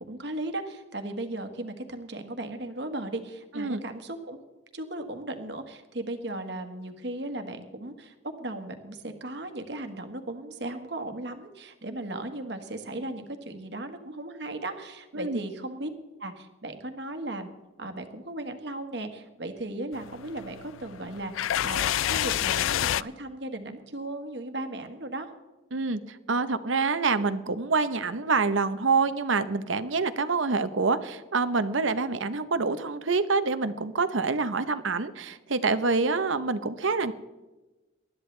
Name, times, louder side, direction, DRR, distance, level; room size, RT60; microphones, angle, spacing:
voice 1, 0.0-4.4 4.7-15.9 16.2-17.5 17.8-25.3, right 1 dB, 60° right, 7 dB, 1.5 m, -36 dB
sound 1, 19.9-23.0, left 11 dB, 90° left, 0.3 m, -28 dB
voice 2, 25.7-37.1, right 4 dB, 80° right, 12 dB, 0.9 m, -26 dB
20.0 x 12.5 x 3.3 m, 1.1 s
head